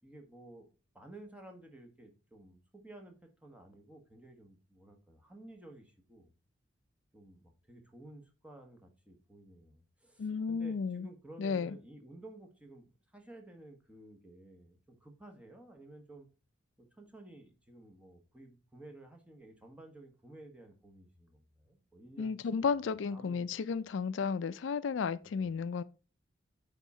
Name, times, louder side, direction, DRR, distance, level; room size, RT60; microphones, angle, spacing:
voice 1, 0.0-0.7 0.9-6.3 7.1-16.3 16.8-23.8 25.2-25.6, right 1 dB, 5° right, 1.2 m, -54 dB
voice 2, 10.2-11.1 11.4-11.8 22.2-25.8, left 5 dB, 80° left, 0.4 m, -33 dB
9.2 x 3.6 x 4.2 m
head